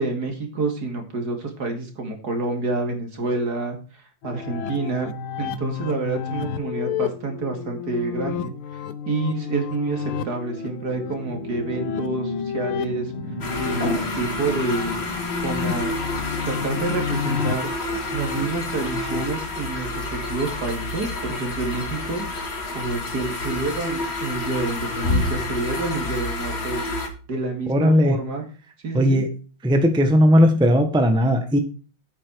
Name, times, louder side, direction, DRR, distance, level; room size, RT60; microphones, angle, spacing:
voice 1, 0.0-5.1 5.4-13.1 13.6-14.9 15.4-15.9 16.4-17.7 18.1-22.5 22.7-26.9 27.3-28.4 28.8-29.2, right 3 dB, 50° right, 4 dB, 2.9 m, -28 dB
sound 1, 4.2-19.3, left 7 dB, 90° left, 1.7 m, -31 dB
sound 2, 10.2-18.0, left 1 dB, 80° right, 2.8 m, -36 dB
sound 3, 13.4-27.1, left 2 dB, 30° left, 1.9 m, -29 dB
voice 2, 27.7-28.2 28.9-29.3 29.6-31.6, equal, 5° right, 6 dB, 1.1 m, -17 dB
8.9 x 8.8 x 4.7 m, 0.36 s
omnidirectional pair, 2.3 m